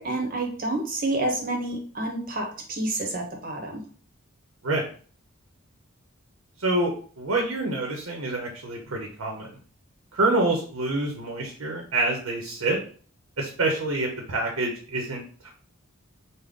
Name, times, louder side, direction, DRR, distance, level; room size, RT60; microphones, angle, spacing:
voice 1, 0.0-3.8, right 2 dB, 40° right, 2 dB, 0.8 m, -29 dB
voice 2, 6.6-9.5 10.1-12.8 13.4-15.5, right 2 dB, 80° right, 1 dB, 0.7 m, -27 dB
3.6 x 2.1 x 3.6 m, 0.43 s
head